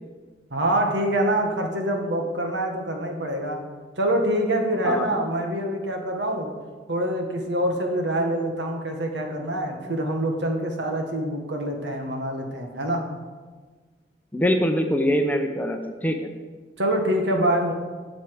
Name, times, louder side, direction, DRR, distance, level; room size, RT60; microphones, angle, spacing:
voice 1, 0.5-3.6 4.0-6.5 6.9-13.1 16.8-17.7, right 1 dB, 80° right, 2 dB, 1.7 m, -25 dB
voice 2, 4.8-5.2 14.3-16.3, equal, 10° left, 4 dB, 0.7 m, -23 dB
8.2 x 7.2 x 7.7 m, 1.4 s
head